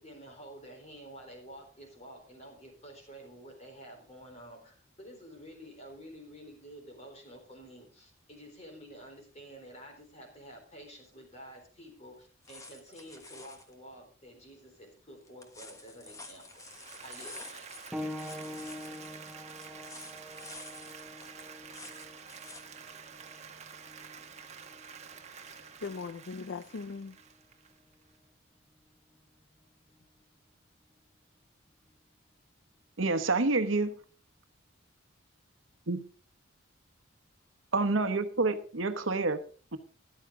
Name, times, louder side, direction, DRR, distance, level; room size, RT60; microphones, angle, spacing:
voice 1, 0.0-16.7 17.0-17.7, equal, 30° left, 3.8 m, -50 dB
sound 1, 12.2-13.7 15.3-22.8 23.2-23.3, left 2 dB, 15° left, 1.3 m, -50 dB
Applause, 16.4-28.2, right 6 dB, 35° right, 1.1 m, -49 dB
sound 2, 17.9-28.1 29.1-29.2 30.0-30.1, left 1 dB, 5° right, 0.5 m, -46 dB
voice 2, 25.4-27.2, left 4 dB, 60° left, 0.5 m, -40 dB
voice 3, 33.0-33.9 35.9-36.0 37.7-39.4 39.7-39.8, right 3 dB, 70° right, 1.1 m, -28 dB
13.5 x 11.5 x 3.7 m
head